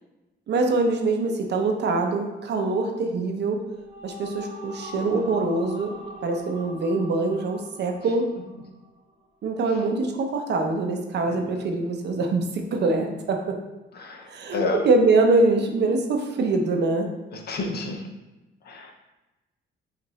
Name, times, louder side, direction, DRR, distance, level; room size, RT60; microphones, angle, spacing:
voice 1, 0.5-3.6 4.0-5.9 6.2-8.3 9.4-13.6 14.3-17.1, right 3 dB, 60° right, 3 dB, 0.7 m, -24 dB
sound 1, 3.5-9.0, equal, 25° right, 1.2 m, -42 dB
voice 2, 14.5-14.8 17.3-18.0 18.7-18.9, left 3 dB, 55° left, 3 dB, 0.7 m, -30 dB
5.5 x 2.5 x 3.1 m, 1.1 s
cardioid pair, 90°, 20 cm